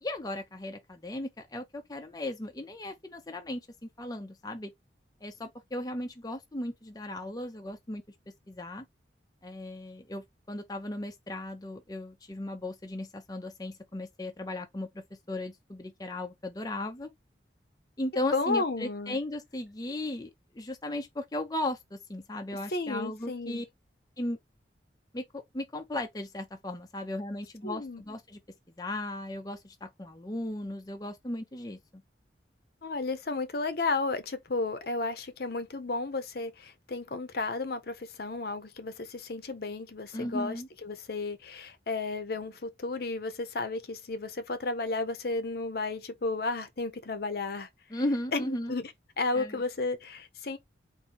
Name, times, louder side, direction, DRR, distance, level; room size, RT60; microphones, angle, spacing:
voice 1, 0.0-4.7 5.2-8.0 8.5-8.8 9.4-17.1 18.0-23.6 24.2-24.4 25.1-28.4 28.8-31.8 40.1-40.7 47.9-48.7 49.3-49.6, left 1 dB, 20° left, 0.5 m, -36 dB
voice 2, 18.3-19.2 22.7-23.6 27.6-28.0 32.8-47.7 48.3-48.9 49.2-50.6, left 3 dB, 55° left, 0.7 m, -33 dB
4.2 x 2.7 x 3.9 m
head